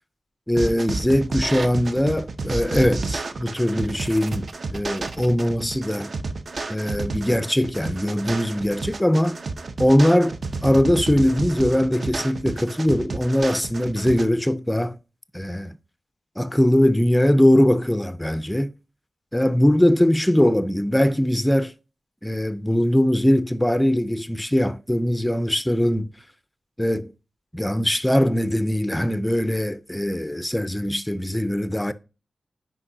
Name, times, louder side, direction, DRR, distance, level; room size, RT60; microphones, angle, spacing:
voice 1, 0.5-6.1 6.7-9.4 9.8-10.4 10.6-15.0 15.3-15.7 16.4-18.7 19.3-21.7 22.2-26.1 26.8-27.1 27.5-31.9, left 1 dB, 5° left, 0.5 m, -21 dB
sound 1, 0.6-14.3, right 3 dB, 50° right, 0.6 m, -31 dB
9.8 x 5.1 x 2.7 m
wide cardioid pair, 160°, 0 cm